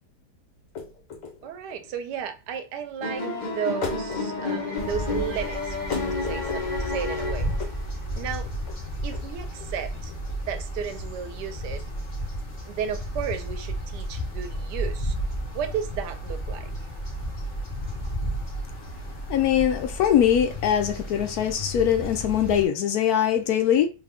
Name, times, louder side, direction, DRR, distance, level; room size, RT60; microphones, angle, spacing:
sound 1, 0.6-13.5, left 4 dB, 90° left, 1.8 m, -39 dB
voice 1, 1.4-5.8 6.1-7.5 8.1-8.5 9.0-10.1 10.5-11.8 12.6-15.2 15.5-16.7, right 8 dB, 80° right, 1.2 m, -33 dB
sound 2, 3.0-7.9, left 3 dB, 55° left, 0.5 m, -31 dB
sound 3, 4.8-22.7, equal, 30° left, 1.2 m, -33 dB
voice 2, 19.3-23.9, left 9 dB, 70° left, 1.0 m, -22 dB
3.7 x 2.1 x 3.5 m
omnidirectional pair, 1.8 m